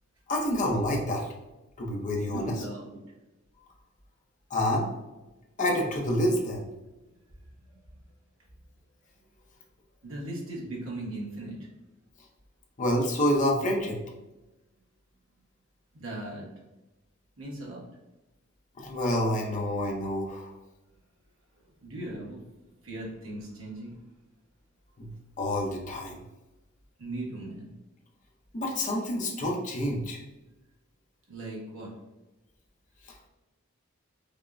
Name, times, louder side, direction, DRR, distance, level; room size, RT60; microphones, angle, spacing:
voice 1, 0.3-1.3 1.8-2.5 4.5-4.9 5.6-6.6 12.8-14.0 18.8-20.5 25.0-25.1 25.4-26.1 28.5-30.2, left 1 dB, 40° left, 0 dB, 0.7 m, -28 dB
voice 2, 2.3-3.0 7.1-7.2 7.7-7.8 10.0-11.7 15.9-16.5 17.4-17.9 21.6-22.4 22.8-24.0 27.0-27.7 31.3-31.9, right 1 dB, 80° right, -4 dB, 1.2 m, -38 dB
5.2 x 2.1 x 2.5 m, 1.1 s
head